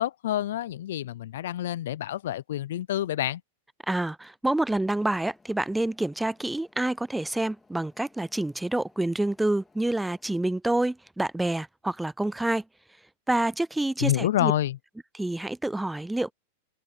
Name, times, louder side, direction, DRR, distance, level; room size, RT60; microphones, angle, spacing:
voice 1, 0.0-3.4 14.0-14.8, left 12 dB, 75° left, 0.4 m, -28 dB
voice 2, 3.9-12.6 13.3-14.5 15.2-16.3, right 1 dB, 5° right, 0.4 m, -27 dB
sound 1, 4.5-10.2, left 3 dB, 10° left, 3.4 m, -62 dB
hypercardioid pair, 120°, 0 cm